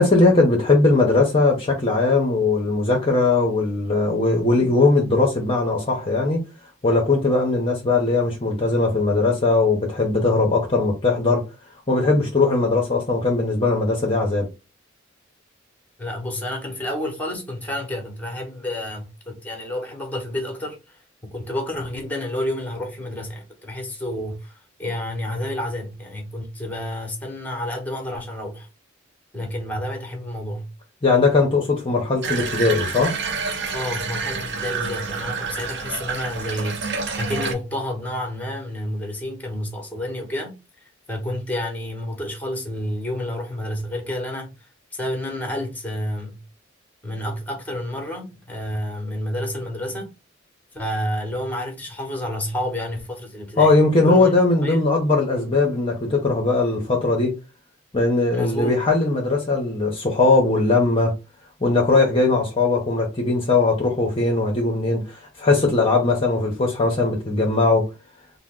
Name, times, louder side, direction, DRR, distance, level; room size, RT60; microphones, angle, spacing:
voice 1, 0.0-6.4 6.8-11.5 11.9-14.5 31.0-33.1 53.6-57.4 57.9-61.2 61.6-67.9, left 3 dB, 30° left, 0.7 m, -19 dB
voice 2, 16.0-28.7 29.3-30.7 33.7-46.4 47.0-50.1 50.7-53.7 54.0-54.3 54.6-54.8 58.3-58.8, left 1 dB, 10° left, 0.9 m, -30 dB
Water tap faucet / Bathtub (filling or washing), 32.2-37.5, right 5 dB, 60° right, 0.7 m, -28 dB
3.4 x 2.0 x 3.6 m
head